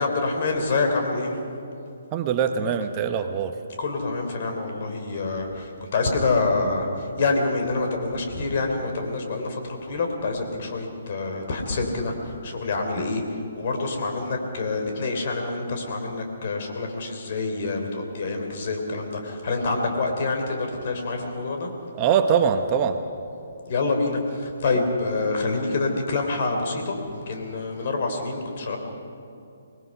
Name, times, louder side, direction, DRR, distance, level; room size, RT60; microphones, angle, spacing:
voice 1, 0.0-1.4 3.8-6.9 7.2-12.1 12.4-13.2 13.6-21.7 23.7-28.8, left 3 dB, 50° left, 3 dB, 3.7 m, -26 dB
voice 2, 2.1-3.5 21.9-23.0 24.7-24.8, right 7 dB, 30° right, 7 dB, 1.0 m, -23 dB
25.0 x 20.0 x 5.7 m, 2.6 s
figure-of-eight pair, 135°, 0 cm